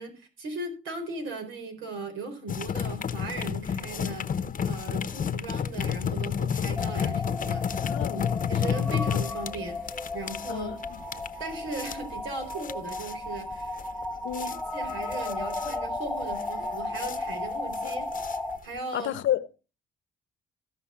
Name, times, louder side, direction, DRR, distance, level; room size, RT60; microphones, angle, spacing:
voice 1, 0.0-10.8 11.4-13.8 14.2-18.3 18.6-19.1, right 2 dB, 90° right, 4.4 m, -38 dB
sound 1, 2.5-18.8, left 7 dB, 45° left, 0.8 m, -31 dB
sound 2, 6.8-18.6, left 2 dB, 5° left, 1.2 m, -35 dB
voice 2, 7.8-8.2 10.5-11.0 14.2-14.6 17.8-17.9 18.9-19.5, left 11 dB, 75° left, 0.9 m, -31 dB
15.0 x 5.5 x 5.7 m
cardioid pair, 90°, 20 cm